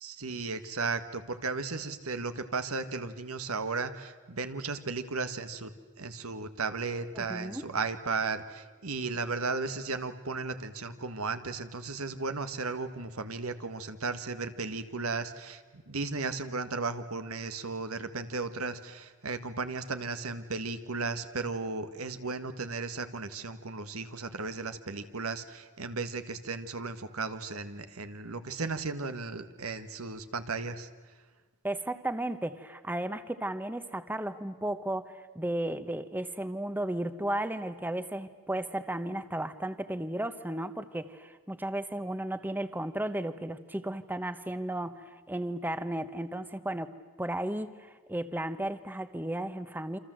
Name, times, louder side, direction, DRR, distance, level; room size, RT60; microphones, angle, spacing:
voice 1, 0.0-5.7 6.0-30.9, right 4 dB, 90° right, 10 dB, 1.7 m, -35 dB
voice 2, 7.1-7.7 31.6-50.0, right 1 dB, 10° right, 12 dB, 1.0 m, -34 dB
28.0 x 26.5 x 7.8 m, 1.4 s
head